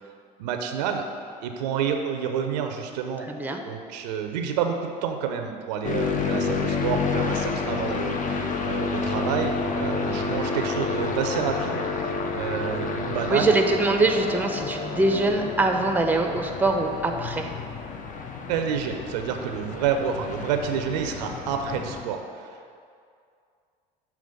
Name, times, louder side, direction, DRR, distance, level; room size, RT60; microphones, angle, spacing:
voice 1, 0.4-1.1 1.4-3.3 3.6-12.1 12.3-13.5 18.5-22.6, right 7 dB, 80° right, 5 dB, 0.6 m, -29 dB
voice 2, 3.3-3.6 13.3-17.5, right 2 dB, 10° right, 4 dB, 0.6 m, -23 dB
sound 1, 5.8-22.0, left 4 dB, 40° left, 0.6 m, -29 dB
7.1 x 3.1 x 5.2 m, 2.3 s
hypercardioid pair, 75°, 21 cm